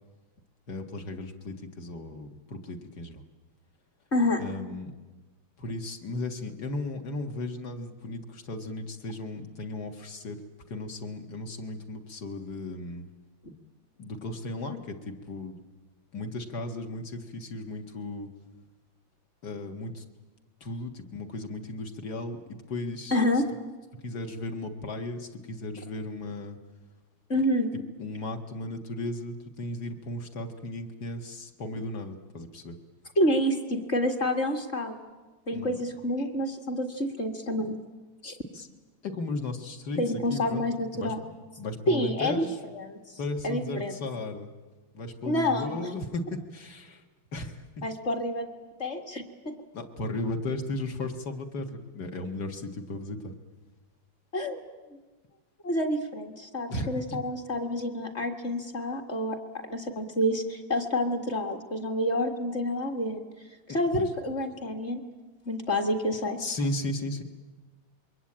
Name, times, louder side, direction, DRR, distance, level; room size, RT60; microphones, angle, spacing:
voice 1, 0.7-3.2 4.4-4.9 5.6-10.4 10.7-13.0 14.0-15.6 16.1-18.3 19.4-20.0 20.6-23.2 24.0-26.6 28.0-32.8 35.5-35.8 38.5-38.7 39.0-40.0 40.3-40.7 40.9-41.1 41.6-42.6 43.2-44.5 44.9-47.0 47.3-47.8 49.7-53.3 56.7-56.9 63.9-64.1 66.4-67.2, left 2 dB, 50° left, 5 dB, 2.2 m, -35 dB
voice 2, 4.1-4.5 13.4-13.5 23.1-23.4 27.3-27.7 33.2-35.0 35.5-37.7 38.2-38.4 40.0-41.2 41.9-42.5 42.7-43.0 43.4-43.9 45.2-45.8 47.8-48.5 48.8-49.5 54.3-54.6 55.6-59.4 59.6-63.2 63.7-65.0 65.5-66.4, left 1 dB, 30° left, 4 dB, 2.1 m, -28 dB
27.0 x 22.5 x 8.8 m, 1.2 s
omnidirectional pair, 2.3 m